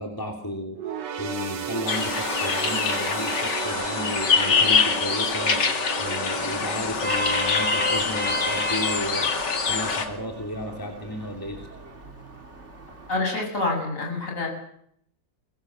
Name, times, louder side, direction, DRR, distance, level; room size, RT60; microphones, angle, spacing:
voice 1, 0.0-9.3 9.7-11.7, equal, 10° left, 3 dB, 2.8 m, -33 dB
sound 1, 0.7-8.4 8.8-9.0 9.9-10.0, right 9 dB, 70° right, 1.9 m, -35 dB
sound 2, 1.9-10.1, left 5 dB, 65° left, 2.8 m, -24 dB
Vehicle horn car horn honking, 6.8-13.2, equal, 35° right, 2.9 m, -33 dB
voice 2, 13.1-14.5, left 2 dB, 45° left, 0 dB, 7.9 m, -27 dB
22.5 x 21.5 x 7.5 m, 0.69 s
omnidirectional pair, 2.0 m